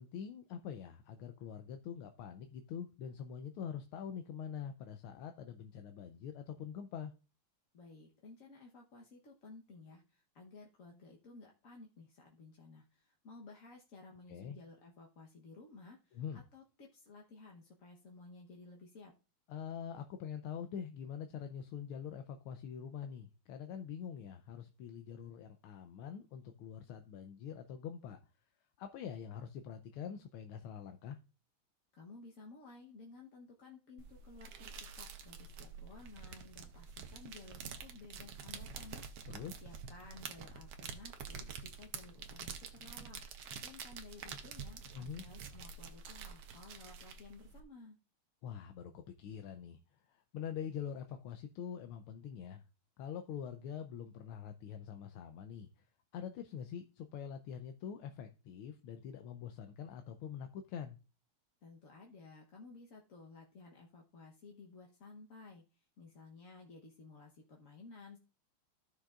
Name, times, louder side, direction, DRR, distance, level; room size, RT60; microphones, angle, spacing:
voice 1, 0.0-7.1 14.3-14.6 16.1-16.4 19.5-28.2 28.8-31.2 39.3-39.6 44.9-45.2 48.4-49.8 50.1-52.6 53.0-55.9 56.1-61.0, left 8 dB, 85° left, 1.5 m, -45 dB
voice 2, 7.7-16.2 16.5-19.1 31.9-48.0 61.6-68.2, left 3 dB, 50° left, 1.2 m, -55 dB
sound 1, 34.0-47.6, right 6 dB, 60° right, 1.3 m, -48 dB
14.0 x 6.4 x 2.4 m
omnidirectional pair, 2.3 m